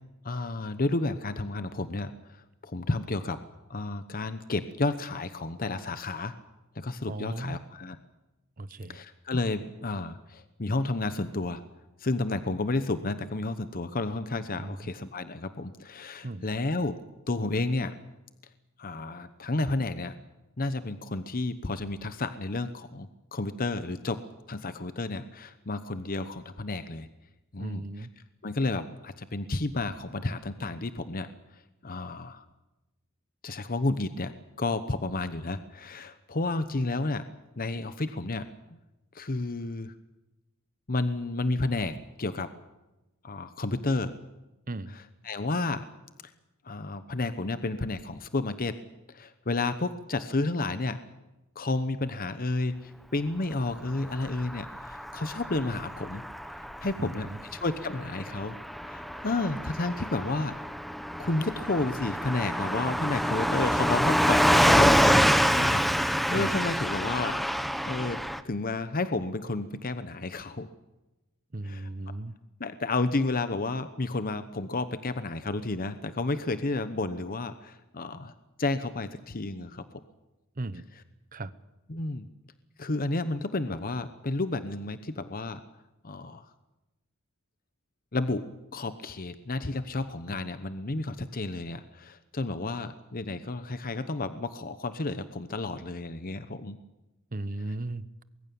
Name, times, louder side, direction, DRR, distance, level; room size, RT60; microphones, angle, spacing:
voice 1, 0.2-2.1 2.6-3.4 3.7-6.3 6.7-8.0 8.9-11.6 12.0-17.0 17.3-17.9 18.8-20.1 20.6-24.2 24.5-27.1 27.5-28.1 28.4-31.3 31.8-32.4 33.4-34.3 34.6-37.2 37.6-38.5 39.1-39.9 40.9-42.5 43.2-44.1 44.9-45.9 46.6-48.7 49.1-51.0 51.6-56.2 56.8-58.6 58.8-60.5 61.2-67.4 67.9-68.2 68.4-70.7 71.6-71.9 72.6-78.3 78.6-80.0 81.9-82.3 82.8-85.6 86.0-86.5 88.1-88.4 88.7-96.8, left 2 dB, 45° left, 11 dB, 1.0 m, -31 dB
voice 2, 7.1-7.6 8.6-9.0 14.6-14.8 16.2-16.5 27.6-28.1 44.7-44.9 57.0-57.4 66.3-66.5 71.5-72.3 80.6-80.8 81.3-81.5 97.3-98.2, right 2 dB, 40° right, 15 dB, 1.0 m, -36 dB
Car passing by / Truck, 54.1-68.4, equal, ahead, 1.0 m, -26 dB
23.5 x 21.5 x 7.1 m, 1.0 s
head